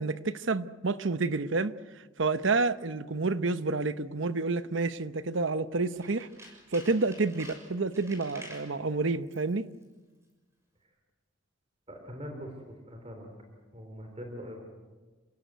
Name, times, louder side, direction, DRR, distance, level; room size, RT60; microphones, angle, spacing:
voice 1, 0.0-6.3 6.7-9.7, right 3 dB, 70° right, 0.9 m, -29 dB
Tools, 5.9-8.7 9.2-9.6 9.8-9.9, equal, 15° right, 6.4 m, -49 dB
voice 2, 11.9-13.3 13.7-14.7, equal, 30° right, 4.0 m, -42 dB
28.5 x 16.5 x 9.3 m
head